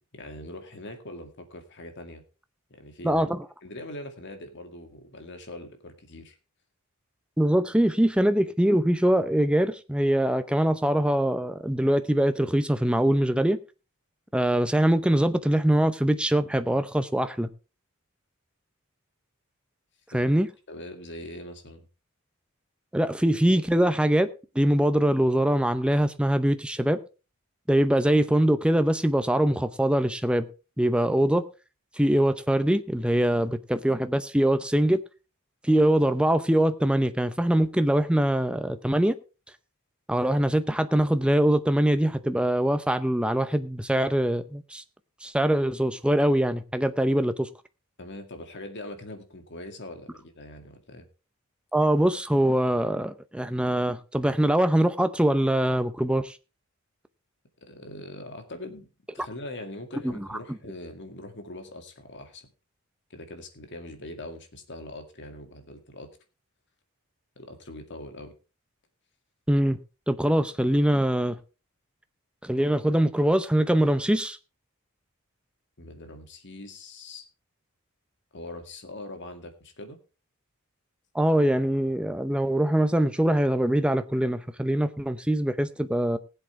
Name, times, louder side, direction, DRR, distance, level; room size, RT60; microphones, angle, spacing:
voice 1, 0.1-2.2 2.7-3.3 3.6-6.4 20.1-20.3 20.7-21.9 48.0-51.1 57.6-58.9 59.1-62.5 63.1-66.1 67.4-68.3 75.8-77.3 78.3-80.0, left 1 dB, 55° left, 2.1 m, -42 dB
voice 2, 3.0-3.5 7.4-13.6 14.3-17.5 20.1-20.5 22.9-24.3 24.5-27.0 27.7-30.5 30.8-31.4 32.0-35.0 35.6-39.2 40.1-44.8 45.2-47.3 51.7-56.4 60.0-60.3 69.5-69.8 70.1-71.4 72.4-74.4 81.1-86.2, right 1 dB, 5° right, 0.7 m, -23 dB
19.0 x 7.9 x 3.3 m
head